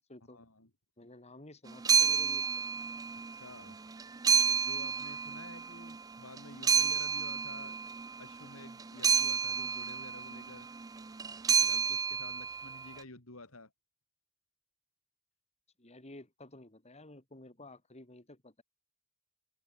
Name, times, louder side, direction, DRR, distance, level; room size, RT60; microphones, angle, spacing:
voice 1, 0.3-0.7 3.1-3.8 4.5-7.8 8.2-10.7 11.6-13.7, left 2 dB, 70° left, 3.5 m, -51 dB
voice 2, 1.0-2.7 15.8-18.6, left 2 dB, 30° left, 3.2 m, -52 dB
sound 1, 1.7-3.4 3.7-6.0 6.4-12.9, right 6 dB, 15° right, 0.3 m, -30 dB
open air
head